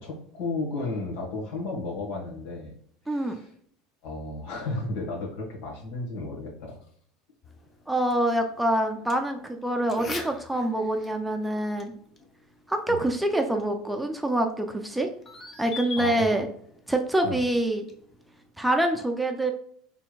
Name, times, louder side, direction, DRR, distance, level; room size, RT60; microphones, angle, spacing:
voice 1, 0.0-2.7 3.0-3.5 4.0-6.8 12.9-13.0 15.9-16.4 17.2-17.4, left 2 dB, 70° left, -1 dB, 1.6 m, -33 dB
voice 2, 3.1-3.4 7.9-11.9 12.7-15.1 15.6-16.5 16.9-17.8 18.6-19.5, right 1 dB, 5° right, 3 dB, 0.5 m, -25 dB
sound 1, 7.4-18.5, left 4 dB, 30° left, 0.8 m, -45 dB
4.4 x 3.4 x 2.4 m, 0.64 s
hypercardioid pair, 85°, 0 cm